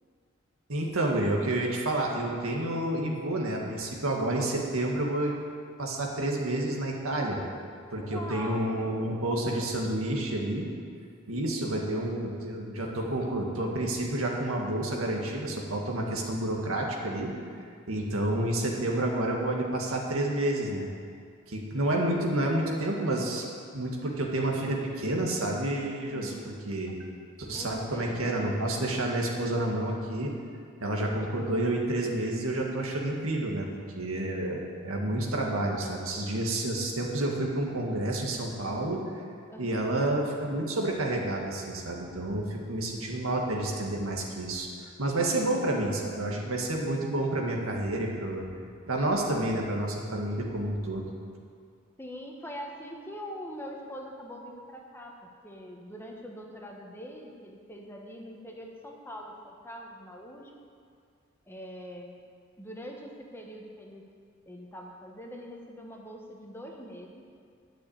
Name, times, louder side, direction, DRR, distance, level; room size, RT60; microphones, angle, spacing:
voice 1, 0.7-5.3 5.8-7.4 7.9-10.7 11.3-17.3 17.9-20.9 21.5-23.4 23.7-27.0 27.4-30.3 30.8-33.7 34.0-39.1 39.6-44.7 45.0-48.5 48.9-51.1, right 1 dB, 85° right, 0 dB, 1.9 m, -29 dB
voice 2, 8.0-9.7 11.5-12.2 26.1-26.6 27.5-28.6 39.5-39.9 45.2-46.2 52.0-60.5 61.5-62.2 62.6-64.0 64.5-67.3, equal, 10° left, 0 dB, 1.2 m, -43 dB
11.5 x 6.3 x 8.7 m, 2.2 s
head